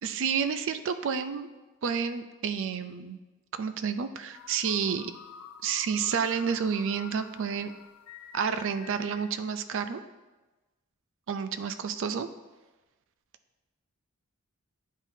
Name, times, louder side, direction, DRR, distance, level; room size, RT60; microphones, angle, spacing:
voice 1, 0.0-1.5 1.8-3.2 3.5-5.1 5.6-7.7 8.3-10.0 11.3-12.3, right 6 dB, 65° right, 10 dB, 0.4 m, -30 dB
sound 1, 4.3-9.3, left 8 dB, 75° left, 0.4 m, -48 dB
10.0 x 3.7 x 2.7 m, 1.2 s
head